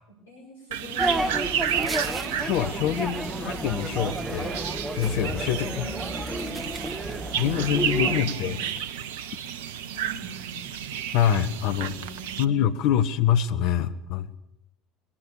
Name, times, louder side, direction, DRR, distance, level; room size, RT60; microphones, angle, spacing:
voice 1, 0.3-1.4 3.0-3.8 5.5-8.7 9.9-10.8 11.7-13.0, right 1 dB, 80° left, 1 dB, 5.4 m, -43 dB
sound 1, 0.7-12.4, right 9 dB, 65° right, 1.0 m, -32 dB
sound 2, 1.0-8.2, right 1 dB, 15° right, 2.5 m, -31 dB
voice 2, 2.4-4.5 4.9-5.9 7.4-8.6 11.1-12.0 12.4-14.3, left 10 dB, 55° left, 9 dB, 1.4 m, -25 dB
sound 3, 3.6-8.4, left 2 dB, 10° left, 5.8 m, -43 dB
22.5 x 21.5 x 6.8 m, 0.82 s
figure-of-eight pair, 65°, 0 cm